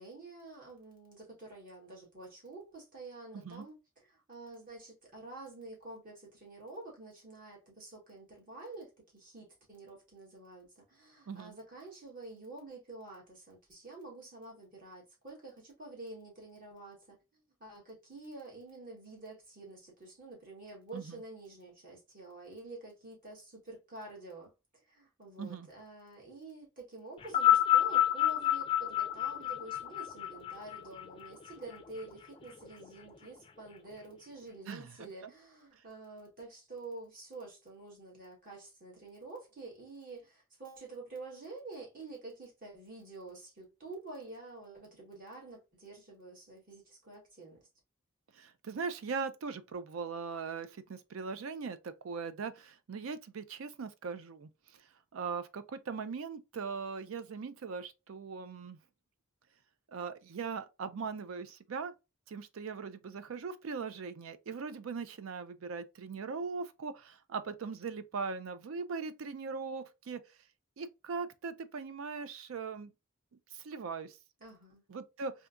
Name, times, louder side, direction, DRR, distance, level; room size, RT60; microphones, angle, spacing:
voice 1, 0.0-47.6 74.4-74.8, right 2 dB, 45° right, 1.7 m, -48 dB
voice 2, 3.3-3.6 11.3-11.5 20.9-21.2 25.4-25.7 34.7-35.3 48.3-54.5 55.1-58.8 59.9-61.9 62.3-70.2 70.8-72.9 73.5-74.2 74.9-75.3, right 5 dB, 85° right, 0.4 m, -40 dB
sound 1, 27.2-31.8 32.7-32.8, left 12 dB, 25° left, 0.4 m, -28 dB
3.5 x 2.7 x 2.5 m
head